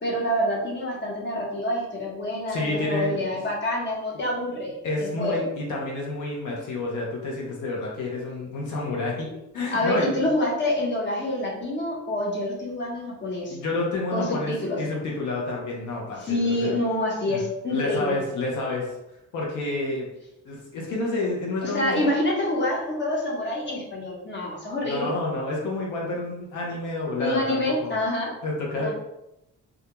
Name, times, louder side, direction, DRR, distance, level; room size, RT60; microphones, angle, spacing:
voice 1, 0.0-5.5 9.7-13.6 14.1-14.8 16.2-18.2 21.6-25.1 27.2-28.3 28.8-28.9, left 1 dB, 35° left, -2 dB, 0.9 m, -27 dB
voice 2, 2.5-3.2 4.8-10.2 13.5-16.8 17.3-17.4 17.7-19.0 19.3-20.1 20.4-22.1 24.9-27.9 28.4-28.9, left 2 dB, 85° left, -3 dB, 0.7 m, -29 dB
2.3 x 2.2 x 2.9 m, 0.89 s
cardioid pair, 90°, 30 cm